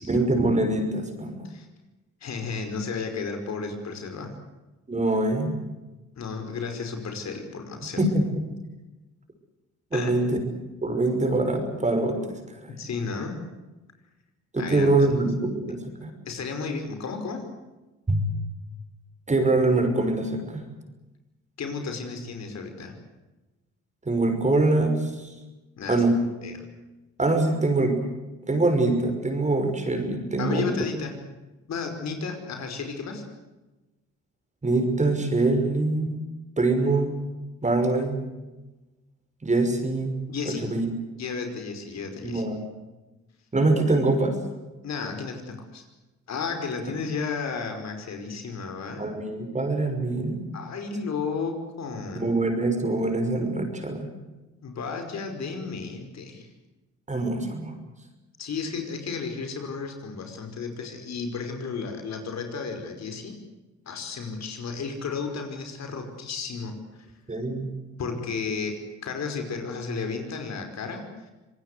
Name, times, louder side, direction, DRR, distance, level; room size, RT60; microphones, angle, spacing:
voice 1, 0.0-1.5 4.9-5.6 8.0-8.2 9.9-10.4 10.8-12.4 14.5-16.1 18.1-18.3 19.3-20.6 24.0-25.3 25.9-26.2 27.2-28.0 28.5-30.7 34.6-36.2 36.6-37.2 37.6-38.2 39.4-40.2 40.5-40.9 42.2-42.6 43.5-44.5 49.0-50.5 52.1-54.1 57.1-57.8 67.3-67.7, right 2 dB, 25° right, 6 dB, 5.9 m, -24 dB
voice 2, 2.2-4.3 6.2-8.0 9.9-10.1 12.7-13.4 14.6-15.3 16.3-17.4 21.6-22.9 25.8-26.0 26.4-26.6 30.4-31.1 31.7-33.2 40.3-40.7 41.2-42.4 44.8-45.9 46.3-49.1 50.5-52.3 54.6-56.5 58.4-63.4 63.9-66.8 68.0-71.3, left 5 dB, 60° left, 6 dB, 5.3 m, -33 dB
26.0 x 19.5 x 8.3 m, 1.1 s
cardioid pair, 90°, 30 cm